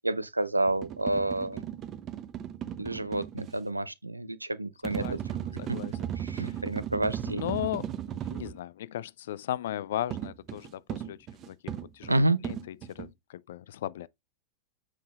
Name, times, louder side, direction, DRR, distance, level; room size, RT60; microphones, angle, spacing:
voice 1, 0.0-1.6 2.8-5.0 6.2-7.5 12.1-12.4, right 2 dB, 85° right, 0.5 m, -29 dB
sound 1, 0.7-3.6 4.8-8.6 10.1-13.1, right 10 dB, 30° right, 0.7 m, -36 dB
voice 2, 4.8-5.2 5.6-6.0 6.4-6.6 7.3-14.1, left 12 dB, 60° left, 0.3 m, -37 dB
7.4 x 5.4 x 2.4 m
figure-of-eight pair, 90°, 0 cm